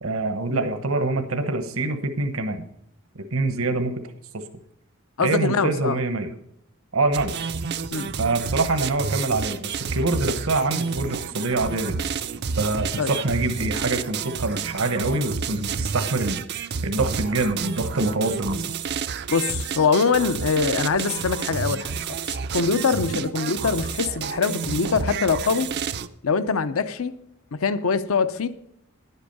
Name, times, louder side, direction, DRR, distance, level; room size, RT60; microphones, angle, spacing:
voice 1, 0.0-2.6 3.3-4.0 4.3-4.4 5.2-6.3 6.9-7.3 8.2-12.0 12.6-18.6 23.1-23.2, right 2 dB, 70° right, 1.0 m, -25 dB
voice 2, 5.2-6.0 7.9-8.1 13.0-13.1 19.3-25.7 26.2-27.1 27.5-28.5, left 5 dB, 70° left, 0.6 m, -23 dB
sound 1, 7.1-26.1, right 6 dB, 50° right, 0.5 m, -30 dB
11.0 x 8.2 x 5.3 m
head